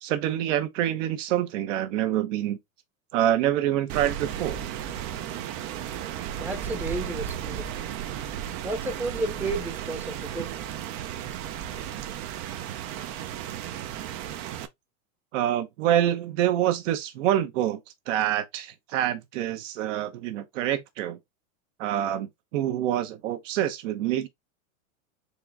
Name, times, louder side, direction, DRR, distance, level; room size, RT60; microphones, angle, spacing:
voice 1, 0.0-2.6 3.1-4.6 15.3-17.8 18.1-21.2 21.8-24.3, right 12 dB, 60° right, 1.1 m, -26 dB
Rain, 3.9-14.7, right 10 dB, 35° right, 0.6 m, -34 dB
voice 2, 6.4-7.7 8.6-10.5, right 2 dB, 5° right, 0.8 m, -32 dB
4.3 x 3.1 x 3.5 m
supercardioid pair, 140°, 42 cm